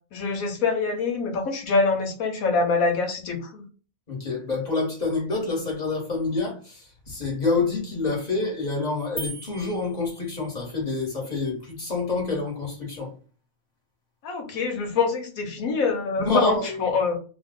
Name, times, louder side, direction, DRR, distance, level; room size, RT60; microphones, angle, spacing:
voice 1, 0.1-3.7 14.2-17.2, left 4 dB, 85° left, 5 dB, 1.3 m, -25 dB
voice 2, 4.1-13.1 16.2-16.9, left 3 dB, 30° left, -2 dB, 1.4 m, -27 dB
sound 1, 9.2-10.7, right 3 dB, 5° left, 0.8 m, -39 dB
3.0 x 2.3 x 3.7 m, 0.38 s
omnidirectional pair, 1.4 m